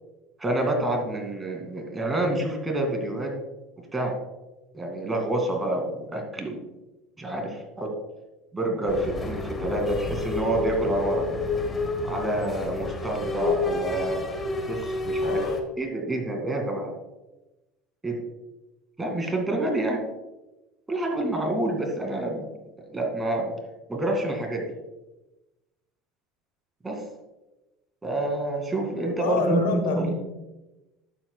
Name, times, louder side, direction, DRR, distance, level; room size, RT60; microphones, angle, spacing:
voice 1, 0.4-3.3 3.9-4.1 4.7-6.6 7.2-7.9 8.5-11.5 12.0-14.2 14.7-15.4 15.8-16.9 18.0-18.2 19.0-20.0 20.9-22.4 22.9-23.5 23.9-24.7 26.8-27.0 28.0-30.1, right 1 dB, 15° right, 3 dB, 2.2 m, -28 dB
sound 1, 8.9-15.6, left 3 dB, 20° left, 1.4 m, -29 dB
voice 2, 15.2-15.6 29.2-30.1, left 5 dB, 85° left, 5 dB, 1.2 m, -28 dB
11.0 x 8.0 x 2.3 m, 1.0 s
supercardioid pair, 90°, 0 cm